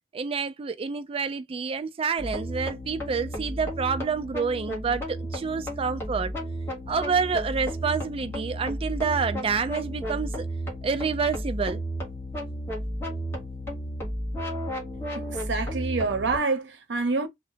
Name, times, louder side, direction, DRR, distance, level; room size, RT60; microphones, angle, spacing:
voice 1, 0.1-6.3 6.9-10.4 10.8-11.8, right 5 dB, 30° right, 0.3 m, -28 dB
sound 1, 2.2-16.4, equal, 15° left, 1.2 m, -33 dB
voice 2, 15.5-17.3, right 3 dB, 85° right, 0.7 m, -26 dB
2.9 x 2.1 x 2.7 m
head